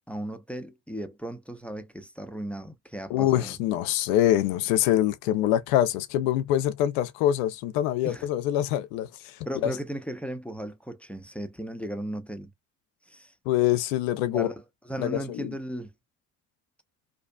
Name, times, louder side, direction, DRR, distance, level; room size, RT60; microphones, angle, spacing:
voice 1, 0.1-3.6 8.0-8.3 9.5-12.5 13.1-13.3 14.3-15.9, right 1 dB, 5° left, 0.6 m, -36 dB
voice 2, 3.1-9.3 9.6-9.7 13.5-14.5 15.0-15.5, left 12 dB, 85° left, 0.5 m, -25 dB
2.5 x 2.3 x 2.2 m
hypercardioid pair, 40°, 42 cm